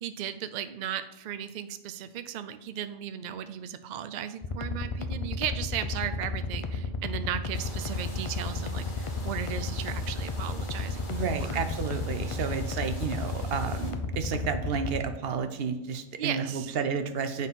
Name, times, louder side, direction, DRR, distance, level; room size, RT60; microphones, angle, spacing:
voice 1, 0.0-11.6 16.2-16.8, right 9 dB, 75° right, 11 dB, 0.4 m, -36 dB
sound 1, 4.4-15.0, left 3 dB, 45° left, 0.4 m, -32 dB
sound 2, 7.5-13.9, left 1 dB, 85° left, 2.3 m, -46 dB
voice 2, 11.1-17.5, right 6 dB, 55° right, 8 dB, 0.8 m, -31 dB
9.3 x 4.0 x 5.5 m, 0.93 s
omnidirectional pair, 1.3 m